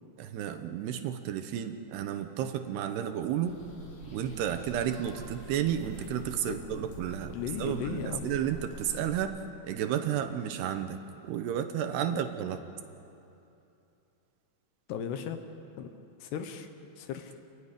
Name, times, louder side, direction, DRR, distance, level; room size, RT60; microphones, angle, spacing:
voice 1, 0.2-3.6 4.1-7.3 7.6-11.0 11.3-12.6, right 10 dB, 75° right, 8 dB, 2.8 m, -32 dB
sound 1, 3.4-9.2, equal, 50° left, 5.2 m, -46 dB
voice 2, 6.4-6.8 7.3-8.3 12.1-12.2 14.9-15.4 15.8-15.9 16.2-16.7 17.0-17.4, left 8 dB, 75° left, 8 dB, 3.0 m, -36 dB
28.5 x 13.5 x 10.0 m, 2.8 s
omnidirectional pair, 5.2 m